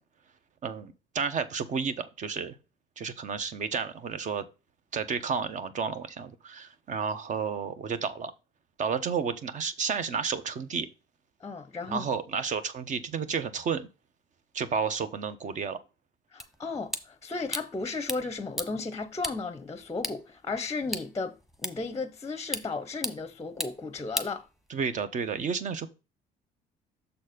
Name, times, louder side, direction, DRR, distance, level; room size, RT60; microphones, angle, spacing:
voice 1, 0.6-2.5 3.0-4.4 4.9-8.3 8.8-10.9 11.9-13.9 14.5-15.8 24.7-25.9, right 6 dB, 45° right, 1.0 m, -31 dB
voice 2, 11.4-12.1 16.3-24.4, left 3 dB, 15° left, 0.7 m, -35 dB
sound 1, 16.4-25.0, left 1 dB, ahead, 1.1 m, -39 dB
6.9 x 4.2 x 5.0 m
cardioid pair, 110°, 17 cm